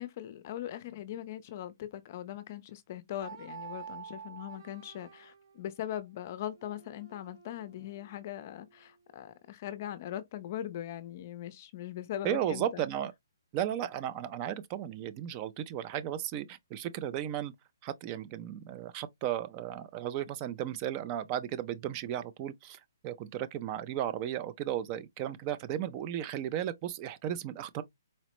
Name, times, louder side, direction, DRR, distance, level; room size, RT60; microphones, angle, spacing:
voice 1, 0.0-12.9, left 11 dB, 40° left, 0.5 m, -40 dB
sound 1, 3.2-9.0, right 7 dB, 75° right, 1.7 m, -50 dB
voice 2, 12.2-13.1 13.5-17.5 17.8-27.8, right 11 dB, 25° right, 0.3 m, -35 dB
4.1 x 2.0 x 2.9 m
hypercardioid pair, 155°, 2 cm